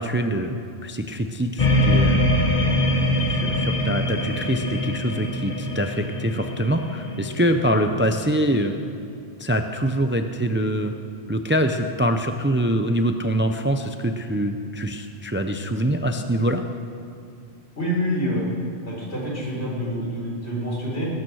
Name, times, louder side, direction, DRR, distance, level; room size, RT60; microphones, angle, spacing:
voice 1, 0.0-2.2 3.3-8.7 9.4-10.9 11.3-16.6, right 1 dB, 15° right, 6 dB, 0.5 m, -24 dB
sound 1, 1.6-8.8, left 1 dB, 40° left, 1.3 m, -24 dB
voice 2, 17.8-18.4 18.9-21.1, equal, 80° left, -4 dB, 4.6 m, -27 dB
19.5 x 9.3 x 6.3 m, 2.5 s
omnidirectional pair, 1.1 m